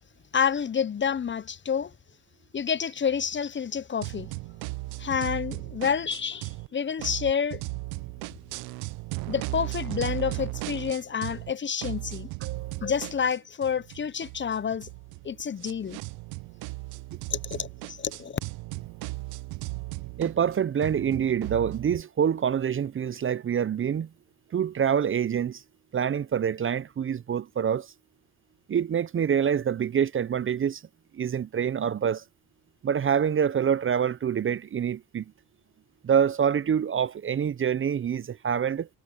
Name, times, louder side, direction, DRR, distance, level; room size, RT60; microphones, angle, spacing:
voice 1, 0.3-1.9 2.5-4.3 5.0-7.6 9.3-12.3 12.8-14.9 15.2-16.0 17.3-18.4, left 7 dB, 30° left, 0.8 m, -29 dB
sound 1, 4.0-6.7 7.0-11.5 11.8-22.0, right 23 dB, 80° right, 0.9 m, -36 dB
voice 2, 12.4-12.8 20.2-24.1 24.5-25.6 25.9-27.9 28.7-30.8 31.1-32.2 32.8-35.2 36.0-38.9, right 8 dB, 35° right, 0.7 m, -26 dB
supercardioid pair, 65°, 36 cm